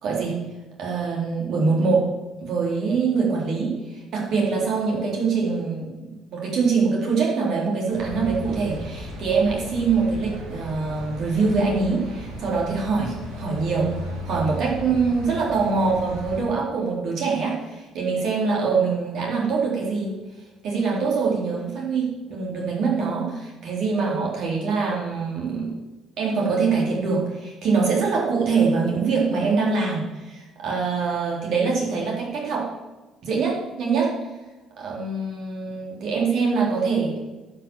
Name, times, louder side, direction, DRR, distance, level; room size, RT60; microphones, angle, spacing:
voice 1, 0.0-0.4 0.8-2.1 2.4-14.0 14.2-20.2 20.6-25.8 26.2-32.7 33.2-34.2 34.8-37.2, right 4 dB, 55° right, -3 dB, 3.7 m, -24 dB
sound 1, 7.9-16.4, equal, 70° right, 2.7 m, -35 dB
11.0 x 5.9 x 7.2 m, 1.2 s
figure-of-eight pair, 50°, 0 cm